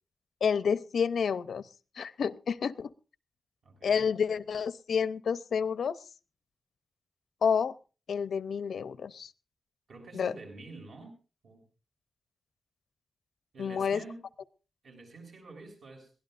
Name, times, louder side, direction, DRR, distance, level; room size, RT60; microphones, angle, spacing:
voice 1, 0.4-1.7 2.0-2.9 3.8-6.0 7.4-7.7 8.1-9.3 10.1-10.3 13.6-14.0, left 6 dB, 80° left, 16 dB, 0.6 m, -29 dB
voice 2, 3.6-4.1 9.9-11.1 11.4-11.6 13.5-14.2 14.8-16.1, right 3 dB, 75° right, 2 dB, 7.1 m, -48 dB
22.5 x 17.0 x 2.5 m, 0.34 s
wide cardioid pair, 175°, 0 cm